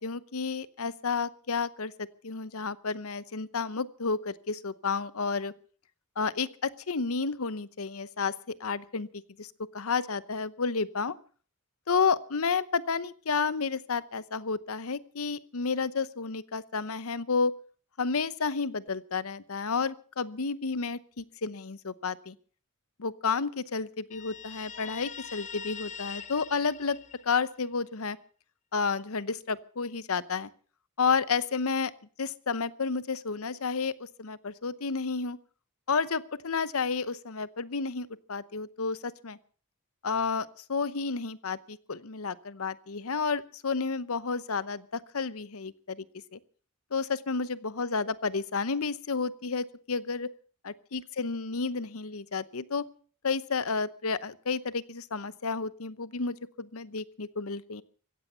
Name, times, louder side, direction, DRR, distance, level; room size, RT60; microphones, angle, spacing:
voice 1, 0.0-1.9 2.2-5.5 6.2-9.1 9.4-11.1 11.9-17.5 18.0-22.3 23.0-27.0 27.2-28.2 28.7-30.5 31.0-31.9 32.2-35.4 35.9-39.4 40.0-46.0 46.3-46.4 46.9-50.3 50.6-52.9 53.2-57.8, left 5 dB, 65° left, 16 dB, 0.9 m, -31 dB
Guitar, 24.1-27.7, left 7 dB, 35° left, 0.9 m, -43 dB
16.0 x 15.5 x 5.6 m, 0.43 s
head